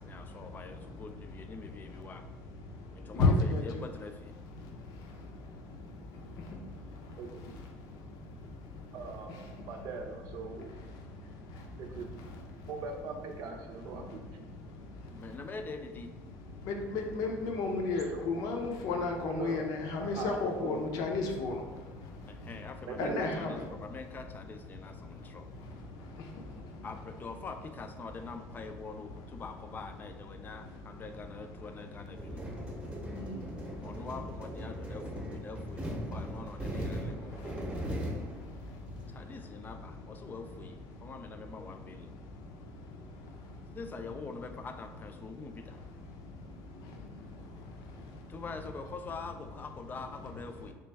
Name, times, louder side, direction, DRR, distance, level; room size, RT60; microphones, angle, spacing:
voice 1, 0.0-2.3 2.9-4.3 15.1-16.1 22.3-25.5 26.8-32.4 33.8-37.8 39.1-42.1 43.7-45.9 48.3-50.7, left 4 dB, 30° left, 7 dB, 0.3 m, -44 dB
voice 2, 3.2-3.6 16.7-21.5 23.0-23.5 33.2-33.3, left 3 dB, 70° left, 2 dB, 0.6 m, -31 dB
voice 3, 7.2-7.6 8.9-9.3 9.7-10.8 11.8-12.1 12.7-14.2 18.1-18.3 19.3-19.6 20.0-20.8 22.9-23.5, right 4 dB, 65° right, 4 dB, 0.6 m, -40 dB
sound 1, 32.2-39.0, equal, 15° right, 0.8 m, -39 dB
3.3 x 3.0 x 3.3 m, 1.3 s
cardioid pair, 110°, 7 cm